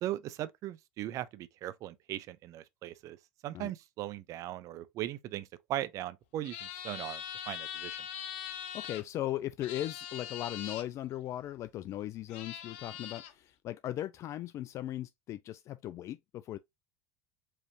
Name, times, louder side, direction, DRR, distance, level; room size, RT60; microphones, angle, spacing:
voice 1, 0.0-3.2 3.4-8.0, right 13 dB, 55° right, 0.5 m, -39 dB
sound 1, 6.4-9.0 9.6-10.8 11.9-12.0 12.3-13.3, left 9 dB, 75° left, 0.7 m, -42 dB
voice 2, 8.7-16.6, left 13 dB, 45° left, 0.3 m, -38 dB
4.7 x 3.1 x 2.7 m
hypercardioid pair, 80°, 7 cm